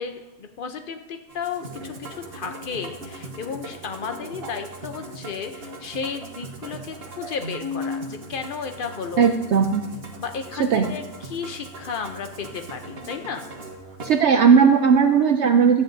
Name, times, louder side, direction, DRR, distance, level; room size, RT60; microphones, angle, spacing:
voice 1, 0.0-9.3 10.2-13.5, left 6 dB, 70° left, 6 dB, 0.5 m, -33 dB
Musical instrument, 1.3-14.2, equal, 40° right, 1.2 m, -38 dB
voice 2, 9.2-9.8 10.6-10.9 14.0-15.8, right 6 dB, 80° right, 6 dB, 0.6 m, -17 dB
13.5 x 9.2 x 2.6 m, 1.1 s
omnidirectional pair, 1.7 m